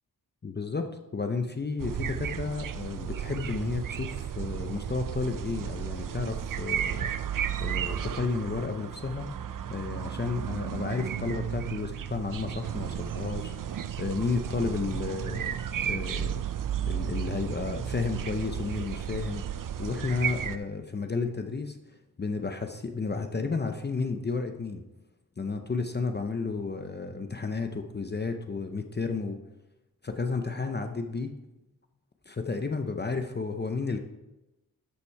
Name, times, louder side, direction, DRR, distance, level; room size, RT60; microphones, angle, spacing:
voice 1, 0.4-7.1 7.6-9.3 9.7-13.5 14.0-15.5 15.8-16.4 16.9-19.4 19.8-24.8 25.4-29.4 30.0-31.3 32.3-34.0, left 4 dB, 30° left, 6 dB, 0.6 m, -32 dB
sound 1, 1.8-20.6, right 9 dB, 60° right, 0.5 m, -33 dB
13.0 x 5.9 x 4.6 m, 1.0 s
wide cardioid pair, 150°, 37 cm